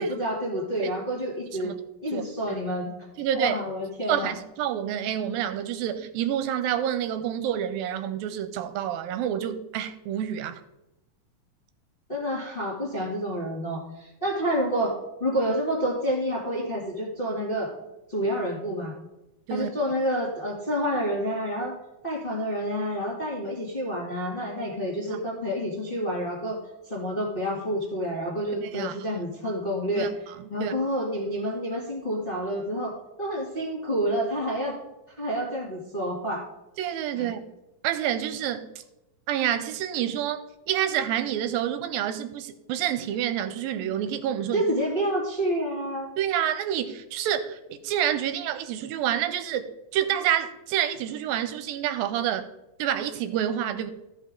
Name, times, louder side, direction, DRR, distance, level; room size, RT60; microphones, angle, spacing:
voice 1, 0.0-1.7 2.0-2.9 3.3-4.3 12.1-14.9 15.2-17.7 18.1-18.9 19.5-21.7 22.0-26.6 26.9-30.1 30.5-32.9 33.2-34.7 35.2-36.4 37.1-37.3 44.5-46.1, equal, 20° left, -4 dB, 1.5 m, -28 dB
voice 2, 3.2-3.5 4.1-10.6 19.5-19.7 25.1-25.2 28.6-29.0 30.0-30.1 30.6-30.7 36.8-37.4 37.8-38.7 39.3-44.7 46.2-52.5 52.8-53.9, right 10 dB, 80° right, 10 dB, 2.3 m, -28 dB
15.0 x 5.6 x 3.7 m, 0.94 s
omnidirectional pair, 4.1 m